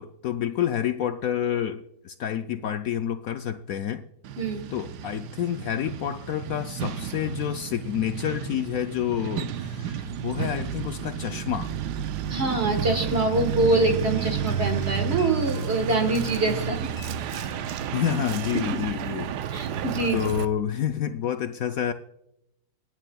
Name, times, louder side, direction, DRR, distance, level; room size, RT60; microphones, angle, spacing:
voice 1, 0.0-4.0 4.7-11.7 17.9-19.3 20.1-21.9, left 10 dB, 70° left, 8 dB, 0.9 m, -28 dB
Truck, 4.2-20.5, right 8 dB, 80° right, 1.3 m, -31 dB
voice 2, 12.3-16.8 19.5-20.3, right 2 dB, 40° right, 6 dB, 1.6 m, -24 dB
sound 1, 14.2-18.4, left 6 dB, 10° left, 4.4 m, -49 dB
26.0 x 9.6 x 2.3 m, 0.80 s
omnidirectional pair, 1.8 m